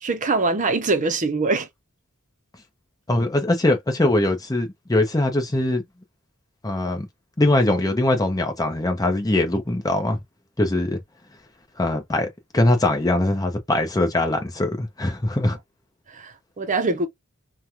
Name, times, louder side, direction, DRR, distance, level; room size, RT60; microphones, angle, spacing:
voice 1, 0.0-1.7 16.1-17.1, right 3 dB, 35° right, 0.7 m, -23 dB
voice 2, 3.1-5.8 6.6-7.1 7.4-10.2 10.6-11.0 11.8-12.3 12.5-15.6, left 1 dB, 20° left, 0.7 m, -21 dB
3.3 x 2.3 x 2.7 m
head